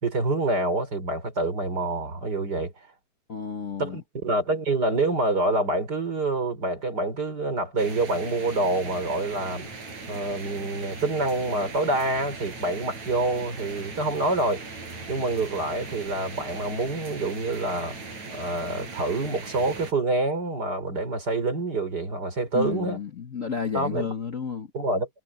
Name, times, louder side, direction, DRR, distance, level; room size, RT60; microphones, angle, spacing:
voice 1, 0.0-2.7 3.8-9.7 10.1-14.6 15.1-18.0 18.3-23.0 23.7-24.1 24.7-25.1, right 2 dB, 30° right, 4.8 m, -27 dB
voice 2, 3.3-4.0 22.5-24.7, left 6 dB, 80° left, 0.7 m, -31 dB
sound 1, 7.8-19.9, right 3 dB, 60° right, 8.7 m, -39 dB
omnidirectional pair, 3.6 m